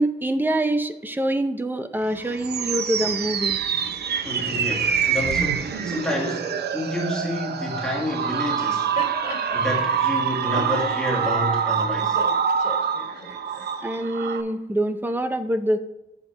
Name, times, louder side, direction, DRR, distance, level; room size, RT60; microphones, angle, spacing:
voice 1, 0.0-3.6 13.8-15.8, right 1 dB, 10° right, 9 dB, 0.5 m, -25 dB
sound 1, 2.0-14.4, right 7 dB, 80° right, 0.7 m, -25 dB
voice 2, 4.1-8.9 9.5-12.2, left 1 dB, 5° left, -4 dB, 1.6 m, -29 dB
Laughter, 8.5-13.7, left 3 dB, 50° left, 2.2 m, -39 dB
8.0 x 6.8 x 3.3 m, 0.93 s
wide cardioid pair, 140°, 17 cm